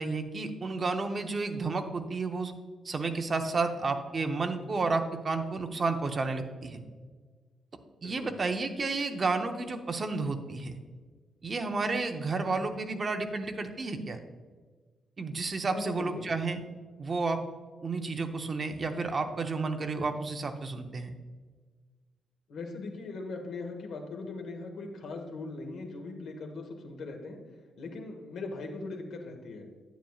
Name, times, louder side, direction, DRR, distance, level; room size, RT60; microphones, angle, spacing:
voice 1, 0.0-2.5 2.8-6.8 8.0-10.8 11.4-14.2 15.2-16.6 17.0-17.4 17.8-21.1, right 3 dB, 30° right, 5 dB, 0.7 m, -31 dB
voice 2, 15.7-16.3 22.5-27.4 27.8-29.7, left 3 dB, 65° left, 3 dB, 1.3 m, -40 dB
10.0 x 9.0 x 2.4 m, 1.4 s
wide cardioid pair, 165°, 0 cm